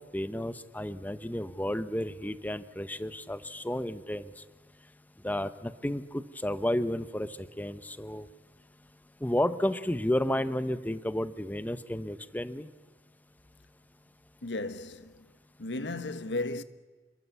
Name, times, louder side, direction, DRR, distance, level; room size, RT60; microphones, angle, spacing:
voice 1, 0.0-4.3 5.2-8.3 9.2-12.7, left 1 dB, 10° left, 0.8 m, -32 dB
voice 2, 14.4-15.3 15.6-16.6, left 2 dB, 85° left, 1.2 m, -35 dB
28.5 x 22.5 x 8.2 m
head